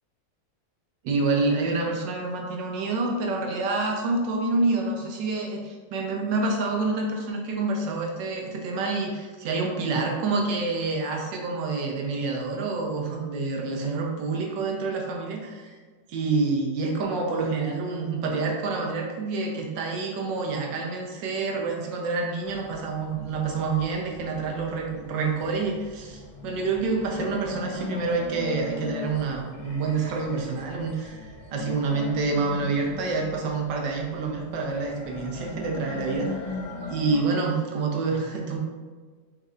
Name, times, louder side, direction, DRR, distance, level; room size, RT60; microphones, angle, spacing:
voice 1, 1.0-15.7 16.1-36.6 36.9-38.6, right 3 dB, 90° right, 1 dB, 1.4 m, -27 dB
sound 1, 22.4-37.2, left 3 dB, 90° left, 1.5 m, -40 dB
5.2 x 3.2 x 2.4 m, 1.4 s
omnidirectional pair, 1.9 m